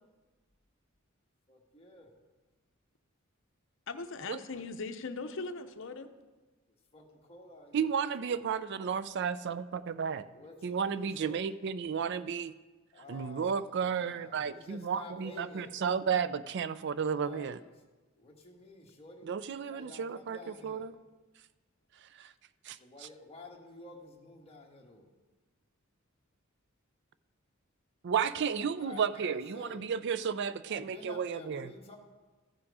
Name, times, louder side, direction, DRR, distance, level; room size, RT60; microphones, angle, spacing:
voice 1, 1.5-2.1 6.9-7.9 8.2-8.4 10.3-11.6 12.9-15.7 17.1-17.6 18.2-19.3 19.7-20.9 22.7-25.1 28.1-29.9 30.7-32.0, left 2 dB, 30° left, -1 dB, 1.4 m, -51 dB
voice 2, 3.9-6.1, left 3 dB, 65° left, 9 dB, 0.7 m, -39 dB
voice 3, 7.7-10.2 10.6-12.5 13.1-17.6 19.3-20.4 20.6-20.9 22.0-22.3 22.6-22.8 28.0-31.7, right 6 dB, 55° right, 15 dB, 0.4 m, -33 dB
14.5 x 6.1 x 4.8 m, 1.2 s
head